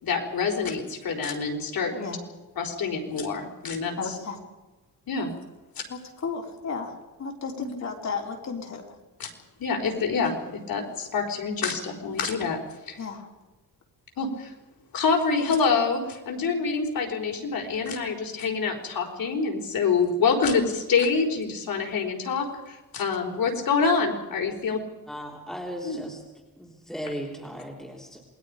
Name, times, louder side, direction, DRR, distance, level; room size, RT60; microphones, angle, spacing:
voice 1, 0.0-1.9 2.6-4.0 5.1-5.3 5.8-5.9 7.6-7.7 9.2-9.3 9.6-12.6 12.9-13.0 14.2-14.5 14.9-24.8 25.8-26.0, left 5 dB, 65° left, 2 dB, 4.5 m, -26 dB
voice 2, 4.0-4.4 5.9-9.0 13.0-13.3, left 5 dB, 45° left, 1 dB, 4.1 m, -34 dB
voice 3, 25.1-26.2 26.6-28.2, equal, ahead, -1 dB, 3.3 m, -37 dB
28.0 x 21.0 x 5.1 m, 1.1 s
wide cardioid pair, 150°, 37 cm